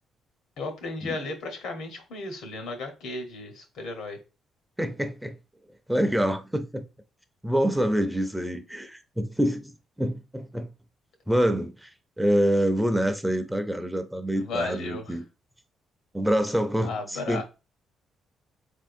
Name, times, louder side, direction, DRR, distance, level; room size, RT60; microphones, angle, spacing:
voice 1, 0.6-4.2 14.4-15.2 16.8-17.4, left 3 dB, 85° left, 1.1 m, -34 dB
voice 2, 4.8-5.4 5.9-6.8 7.4-9.7 10.0-10.7 11.3-15.2 16.1-17.4, equal, 5° right, 0.5 m, -26 dB
4.0 x 3.5 x 2.6 m
cardioid pair, 90°, 0 cm